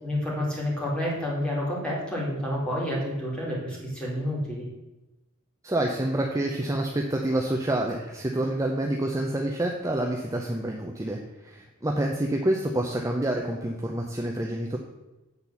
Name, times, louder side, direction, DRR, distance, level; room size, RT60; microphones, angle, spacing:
voice 1, 0.0-4.7, left 1 dB, 5° left, -5 dB, 2.6 m, -29 dB
voice 2, 5.6-14.8, right 1 dB, 15° right, 1 dB, 0.7 m, -28 dB
8.1 x 4.4 x 6.9 m, 1.0 s
head